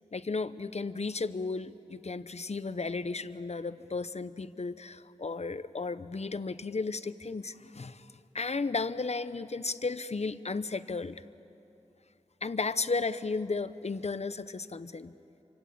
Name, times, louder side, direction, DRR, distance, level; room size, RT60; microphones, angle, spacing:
voice 1, 0.1-8.1 8.3-11.2 12.4-15.1, left 4 dB, 60° left, 13 dB, 0.8 m, -34 dB
26.5 x 25.5 x 8.7 m, 2.9 s
wide cardioid pair, 65°, 13 cm